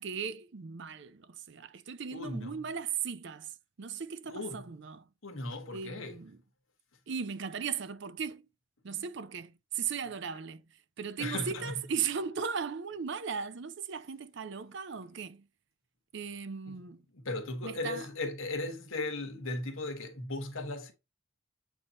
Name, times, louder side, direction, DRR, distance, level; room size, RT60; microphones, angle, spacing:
voice 1, 0.0-3.5 3.8-5.0 5.7-6.4 7.1-8.4 8.8-10.6 11.0-15.4 16.1-17.0 17.6-18.1, right 6 dB, 55° right, 0.5 m, -37 dB
voice 2, 2.1-2.6 4.2-4.6 5.2-6.2 11.2-11.8 16.6-16.8 17.1-20.9, left 2 dB, 70° left, 1.3 m, -37 dB
8.1 x 2.8 x 4.2 m
head